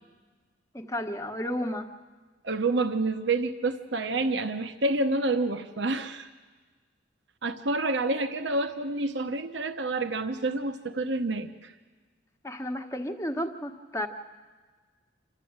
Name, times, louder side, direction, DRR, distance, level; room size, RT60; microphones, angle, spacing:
voice 1, 0.7-1.9 12.4-14.1, equal, 15° left, 5 dB, 1.2 m, -32 dB
voice 2, 2.4-6.3 7.4-11.7, right 2 dB, 70° right, 8 dB, 0.9 m, -28 dB
27.0 x 13.0 x 8.8 m, 1.4 s
head